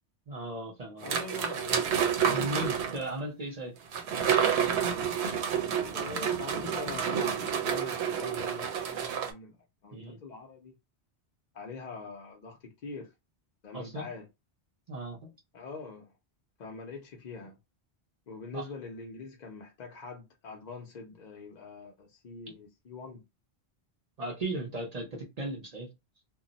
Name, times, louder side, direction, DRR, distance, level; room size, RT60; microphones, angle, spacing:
voice 1, 0.3-1.1 2.3-3.8 9.9-10.2 13.7-14.1 14.9-15.3 18.5-18.7 24.2-25.9, right 1 dB, 45° right, 0.6 m, -36 dB
voice 2, 1.0-1.9 5.9-9.6 9.8-10.7 11.5-13.1 13.6-14.3 15.5-16.1 16.6-17.5 18.3-23.2, left 4 dB, 50° left, 0.6 m, -43 dB
sound 1, 1.0-3.0 3.9-9.3, right 7 dB, 75° right, 0.9 m, -29 dB
2.2 x 2.0 x 3.8 m
omnidirectional pair, 1.1 m